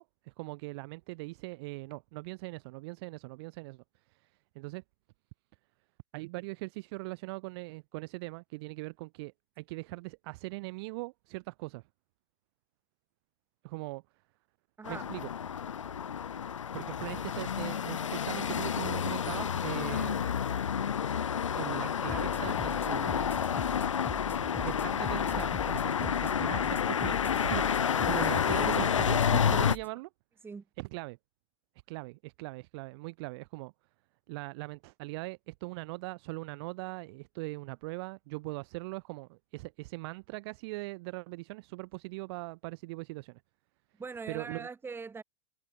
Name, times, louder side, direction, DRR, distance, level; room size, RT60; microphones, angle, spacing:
voice 1, 0.0-4.8 6.1-11.8 13.6-14.0 14.9-15.3 16.7-20.3 21.5-23.3 24.6-30.1 30.8-31.2 31.9-33.7 34.3-43.4 44.3-44.7, right 24 dB, 55° right, 1.6 m, -40 dB
sound 1, 14.8-29.8, left 8 dB, 85° left, 1.9 m, -30 dB
voice 2, 14.8-15.1 17.3-17.5 30.4-30.6 44.0-45.2, right 4 dB, 15° right, 2.1 m, -41 dB
sound 2, 22.1-29.9, left 4 dB, 15° left, 7.6 m, -42 dB
hypercardioid pair, 105°, 16 cm